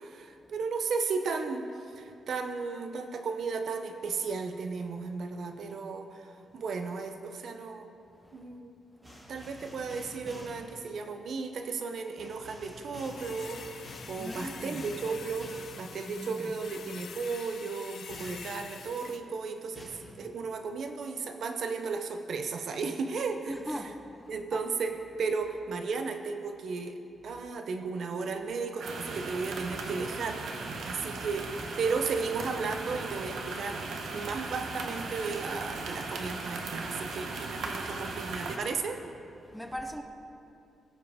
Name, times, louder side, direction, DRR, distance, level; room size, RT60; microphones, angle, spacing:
voice 1, 0.0-1.7 1.9-7.9 8.3-8.7 9.3-23.9 24.3-30.4 30.7-31.5 31.8-33.8 34.1-39.0, right 4 dB, 55° right, 0.6 m, -35 dB
sound 1, 9.0-10.6 12.2-15.8 18.1-18.5 19.8-19.9, equal, 15° right, 2.6 m, -47 dB
sound 2, 13.0-19.2, left 6 dB, 60° left, 0.6 m, -46 dB
voice 2, 14.1-14.8 16.0-16.8 23.5-24.6 39.4-40.0, equal, ahead, 0.5 m, -41 dB
sound 3, 28.8-38.6, right 3 dB, 75° right, 1.0 m, -37 dB
17.0 x 7.3 x 3.5 m
wide cardioid pair, 155°, 0 cm